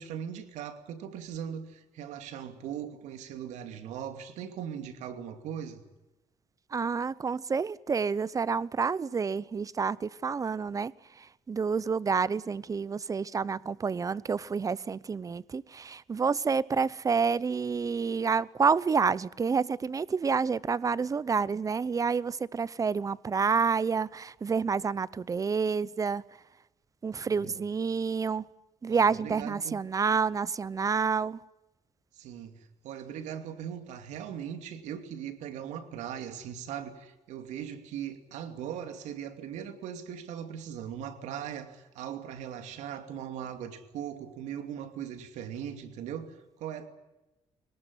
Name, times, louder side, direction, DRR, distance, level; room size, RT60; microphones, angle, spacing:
voice 1, 0.0-5.8 27.2-27.5 28.9-29.8 32.1-46.9, right 9 dB, 90° right, 2.7 m, -39 dB
voice 2, 6.7-10.9 11.2-26.2 27.0-28.4 28.8-31.4, right 5 dB, 30° right, 0.8 m, -29 dB
22.5 x 19.5 x 9.8 m
cardioid pair, 105°, 12 cm